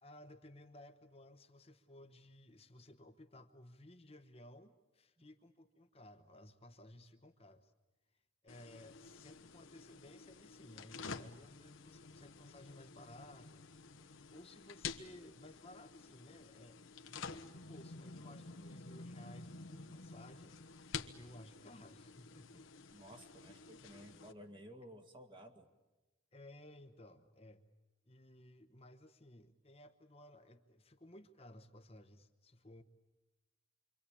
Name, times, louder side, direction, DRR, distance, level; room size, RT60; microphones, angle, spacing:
voice 1, 0.0-7.7 8.4-13.7 14.3-16.8 17.1-20.5 21.1-22.9 26.3-27.7 28.1-32.8, left 1 dB, 30° left, 6 dB, 1.1 m, -57 dB
sound 1, 8.5-24.3, left 5 dB, 85° left, 1.3 m, -50 dB
voice 2, 22.9-25.7, equal, 25° right, 5 dB, 1.9 m, -55 dB
27.5 x 24.0 x 8.6 m, 1.1 s
head